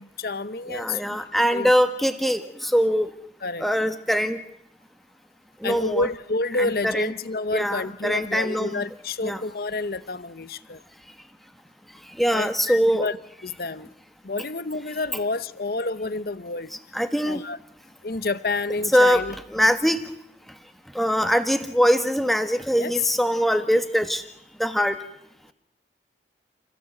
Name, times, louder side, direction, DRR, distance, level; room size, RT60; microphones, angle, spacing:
voice 1, 0.0-1.0 1.5-1.7 3.4-3.6 5.6-10.8 12.3-13.2 13.4-13.9 14.2-16.7 17.3-17.6 18.0-19.3 22.8-22.9, left 3 dB, 55° left, 15 dB, 0.8 m, -29 dB
voice 2, 0.7-3.1 3.6-4.4 5.6-6.1 6.6-7.1 7.5-8.8 9.2-9.4 12.2-13.0 16.9-17.4 18.9-19.2 19.5-20.0 20.9-24.2 24.6-25.0, equal, ahead, 8 dB, 1.4 m, -22 dB
30.0 x 16.0 x 7.7 m, 0.77 s
head